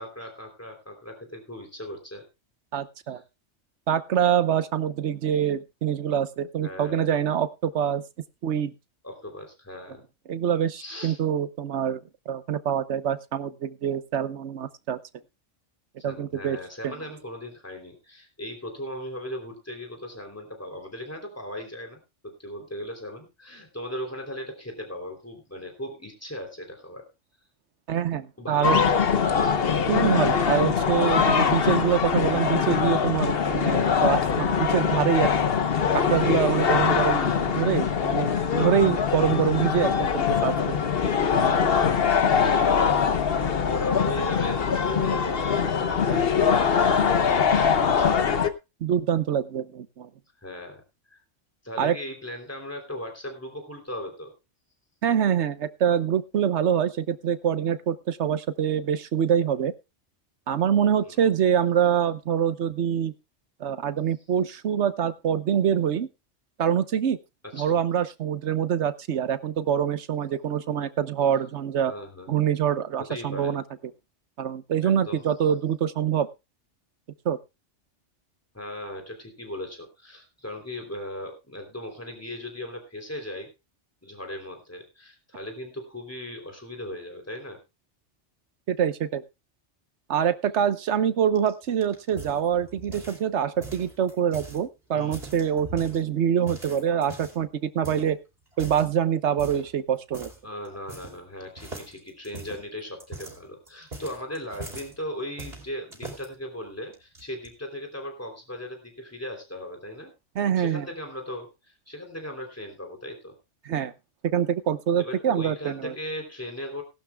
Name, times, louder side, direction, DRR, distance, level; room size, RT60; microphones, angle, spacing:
voice 1, 0.0-2.3 3.1-3.2 6.6-7.1 9.0-10.0 10.7-11.2 16.1-27.1 28.4-29.9 36.5-36.8 38.3-38.9 41.5-48.4 50.4-50.8 51.1-51.2 51.6-54.3 61.0-61.2 67.4-67.8 71.9-72.3 73.0-73.5 74.8-75.3 78.5-83.5 84.0-87.6 91.0-91.1 94.9-95.2 100.4-110.1 110.6-111.5 111.9-113.3 115.0-116.8, left 1 dB, 10° left, 3 dB, 3.2 m, -38 dB
voice 2, 2.7-3.2 3.9-8.0 8.4-8.7 10.3-12.0 12.3-15.0 16.0-16.6 16.8-17.0 27.9-28.8 29.9-35.5 35.9-41.6 48.8-50.1 51.8-52.0 55.0-59.7 60.5-63.1 63.6-66.1 66.6-67.2 67.5-71.9 72.3-73.6 74.4-76.3 77.2-77.4 88.7-89.2 90.1-98.2 98.6-100.3 110.3-110.9 113.6-113.9 114.2-115.9, right 9 dB, 70° right, 13 dB, 1.2 m, -25 dB
sound 1, 28.6-48.5, left 6 dB, 55° left, 1.1 m, -23 dB
sound 2, 91.4-93.3 93.6-94.6 95.0-96.0 96.5-97.4 97.8-98.1 98.5-98.9 99.4-99.7 100.1-100.4 100.6-101.3 101.6-104.9 105.4-106.3 106.9-107.5, right 2 dB, 55° right, 4.5 m, -41 dB
18.5 x 12.0 x 2.3 m, 0.26 s
omnidirectional pair, 1.2 m